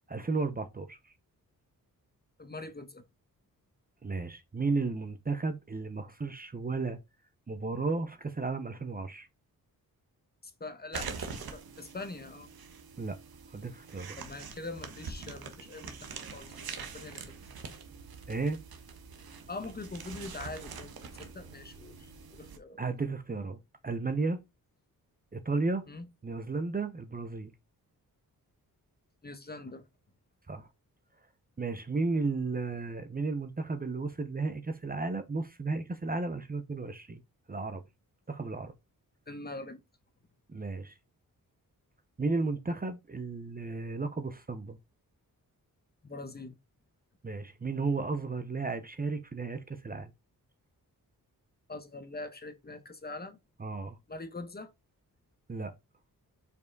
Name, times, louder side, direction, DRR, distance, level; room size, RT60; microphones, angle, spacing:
voice 1, 0.1-1.0 4.0-7.0 7.5-9.3 13.0-13.2 13.5-14.2 18.3-18.6 22.8-24.4 25.3-25.8 26.2-27.5 30.5-30.7 31.6-37.2 37.5-37.8 38.3-38.7 40.5-40.9 42.2-44.8 47.2-50.1 53.6-54.0 55.5-55.7, right 3 dB, 25° right, 0.8 m, -33 dB
voice 2, 2.4-3.0 10.4-12.5 14.2-17.4 19.5-22.8 25.9-26.1 29.2-29.8 39.3-39.8 46.0-46.6 51.7-53.4 54.1-54.7, left 2 dB, 25° left, 1.1 m, -43 dB
sound 1, 10.9-22.6, right 5 dB, 80° right, 1.4 m, -44 dB
5.5 x 4.7 x 3.9 m
wide cardioid pair, 105°, 36 cm